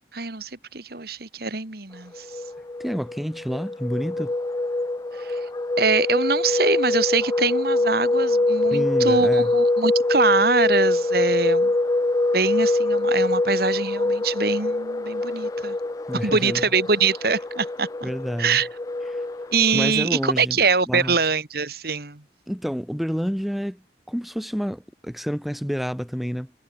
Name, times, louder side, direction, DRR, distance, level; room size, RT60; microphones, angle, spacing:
voice 1, 0.1-2.3 5.1-5.4 5.8-11.7 12.3-15.8 16.2-18.1 18.4-18.7 19.5-22.2, right 4 dB, 60° right, 2.2 m, -24 dB
sound 1, 2.1-19.9, left 2 dB, 20° left, 0.4 m, -24 dB
voice 2, 2.8-4.3 8.7-9.5 16.1-16.6 18.0-18.6 19.1-19.2 19.7-20.6 20.9-21.1 22.5-26.5, equal, ahead, 1.1 m, -29 dB
head